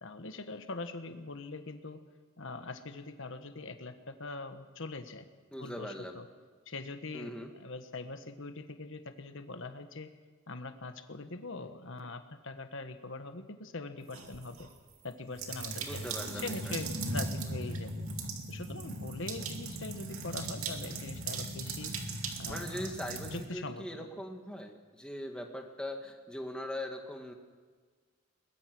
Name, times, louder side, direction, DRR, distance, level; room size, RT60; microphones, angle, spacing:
voice 1, 0.0-2.0 2.4-5.2 5.6-6.3 6.7-10.1 10.5-14.7 15.0-18.0 18.5-21.9 22.4-22.9 23.3-24.1, left 3 dB, 60° left, 8 dB, 1.4 m, -42 dB
voice 2, 5.5-6.2 7.1-7.5 15.8-16.7 22.5-27.3, left 1 dB, 5° left, 3 dB, 1.9 m, -41 dB
sound 1, 14.1-14.7 15.3-23.4, right 2 dB, 75° right, 2.5 m, -38 dB
22.0 x 20.5 x 6.3 m, 1.5 s
head